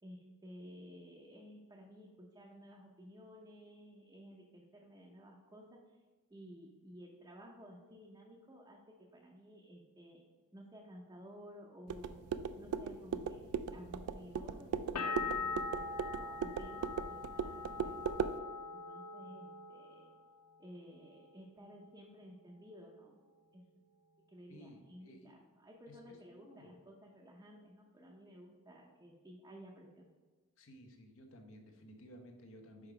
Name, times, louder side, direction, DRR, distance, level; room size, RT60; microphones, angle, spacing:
voice 1, 0.0-6.0 6.3-10.2 10.5-12.2 12.6-13.4 13.7-18.1 18.7-20.1 20.6-23.1 23.5-23.6 24.3-30.1, equal, 15° right, -2 dB, 0.6 m, -55 dB
sound 1, 11.9-18.4, right 6 dB, 70° right, 0.3 m, -38 dB
sound 2, 15.0-20.6 20.9-21.6, left 4 dB, 90° left, 0.7 m, -42 dB
voice 2, 17.6-17.9 24.5-25.4 25.9-26.8 30.6-32.9, equal, 60° left, 4 dB, 0.9 m, -56 dB
5.0 x 5.0 x 4.8 m, 1.4 s
head